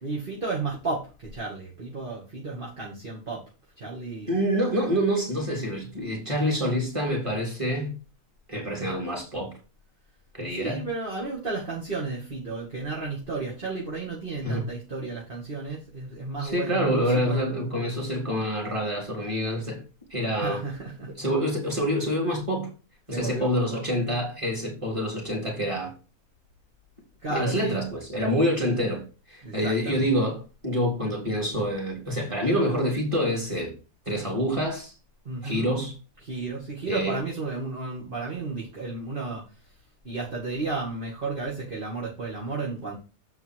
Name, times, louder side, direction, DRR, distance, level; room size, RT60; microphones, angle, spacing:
voice 1, 0.0-3.4 3.8-4.3 10.6-17.4 20.4-21.1 23.1-23.8 27.2-27.8 29.4-30.0 35.3-35.7 36.2-39.4 40.0-42.9, right 3 dB, 35° right, 2.4 m, -33 dB
voice 2, 4.3-7.9 8.5-9.5 10.3-10.8 14.4-14.7 16.4-19.8 20.1-20.6 21.2-22.7 23.1-25.9 27.3-29.0 29.3-33.7 34.1-34.9 35.4-35.9 36.9-37.2, equal, 20° right, 3.7 m, -27 dB
7.7 x 5.6 x 4.7 m
omnidirectional pair, 1.5 m